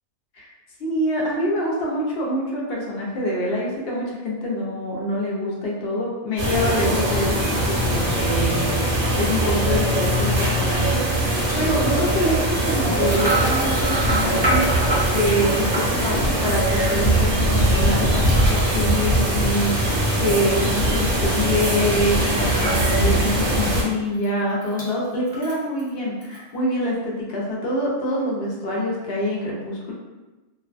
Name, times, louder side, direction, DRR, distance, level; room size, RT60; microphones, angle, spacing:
voice 1, 0.8-14.7 15.1-29.9, equal, 60° left, -4 dB, 0.7 m, -25 dB
sound 1, 6.4-23.8, right 1 dB, 60° right, 0.8 m, -21 dB
sound 2, 10.2-10.4 11.3-11.6 13.0-17.0 18.1-20.7 22.5-23.5 23.8-23.9 24.2-24.9 25.3-25.9 26.2-26.4, right 1 dB, 10° right, 0.5 m, -28 dB
2.5 x 2.2 x 2.4 m, 1.1 s
omnidirectional pair, 1.5 m